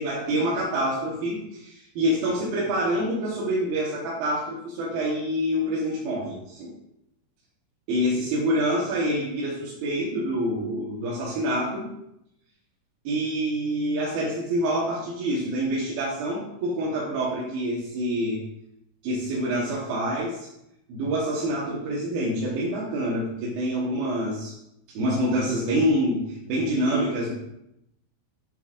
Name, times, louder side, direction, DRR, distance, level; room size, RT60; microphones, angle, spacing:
voice 1, 0.0-6.7 7.9-11.9 13.0-18.4 19.0-20.5 20.9-24.5 24.9-27.3, equal, 65° right, -6 dB, 2.8 m, -26 dB
9.9 x 8.0 x 2.6 m, 0.81 s
omnidirectional pair, 5.4 m